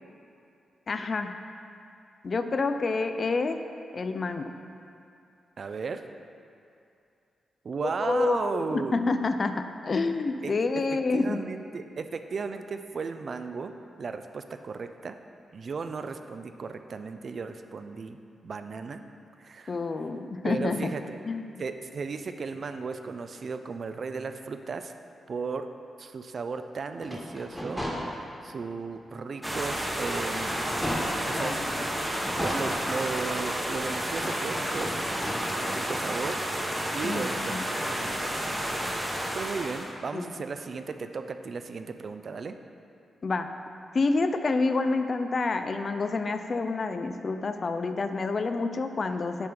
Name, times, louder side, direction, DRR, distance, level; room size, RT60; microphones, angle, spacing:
voice 1, 0.9-1.4 2.2-3.6 3.9-4.5 8.0-11.4 19.7-20.9 21.3-21.5 31.4-31.9 37.0-37.7 40.1-40.3 43.2-43.5 43.9-49.5, left 3 dB, 45° left, 8 dB, 0.4 m, -28 dB
voice 2, 5.6-6.0 7.6-9.0 10.4-10.8 11.1-15.1 15.5-18.2 18.4-19.0 19.4-19.8 20.4-21.2 21.6-24.9 25.3-25.7 26.0-27.8 28.4-30.6 31.3-31.6 32.4-35.0 35.6-36.4 36.9-38.8 39.3-42.6, right 4 dB, 55° right, 8 dB, 0.4 m, -35 dB
sound 1, 27.0-28.6 29.1-29.2 29.6-31.4 32.0-33.5 34.0-35.4, equal, 5° left, 1.3 m, -36 dB
sound 2, 29.4-39.9, equal, 10° right, 0.9 m, -31 dB
6.9 x 4.4 x 5.0 m, 2.5 s
cardioid pair, 75°, 0 cm